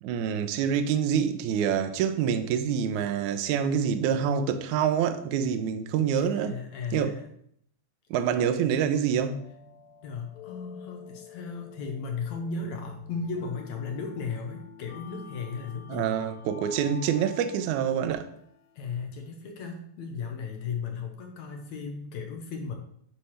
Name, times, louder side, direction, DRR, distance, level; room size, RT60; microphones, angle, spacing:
voice 1, 0.0-6.5 6.9-7.2 8.1-9.4 15.9-18.3, right 8 dB, 80° right, 1.8 m, -26 dB
voice 2, 6.1-7.3 10.0-16.2 18.8-22.7, left 5 dB, 70° left, 1.8 m, -36 dB
sound 1, 9.2-19.4, left 6 dB, 90° left, 2.5 m, -48 dB
9.5 x 3.4 x 5.7 m
omnidirectional pair, 4.1 m